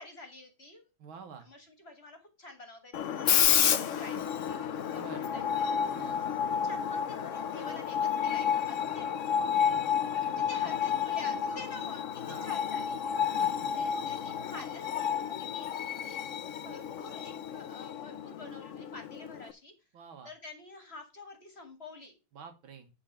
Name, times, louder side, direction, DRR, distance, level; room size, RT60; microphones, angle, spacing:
voice 1, 0.0-0.9 1.4-6.2 6.5-9.2 9.7-13.2 13.5-19.7 20.2-22.2, left 2 dB, 35° left, 6 dB, 1.6 m, -49 dB
voice 2, 1.0-1.5 4.1-4.2 4.9-5.3 5.9-6.2 9.6-10.5 12.3-12.5 13.4-13.7 19.9-20.3 22.3-22.9, right 6 dB, 80° right, 6 dB, 2.3 m, -49 dB
Screech, 2.9-19.5, left 8 dB, 70° left, 0.7 m, -31 dB
10.5 x 3.9 x 6.5 m, 0.28 s
omnidirectional pair, 2.2 m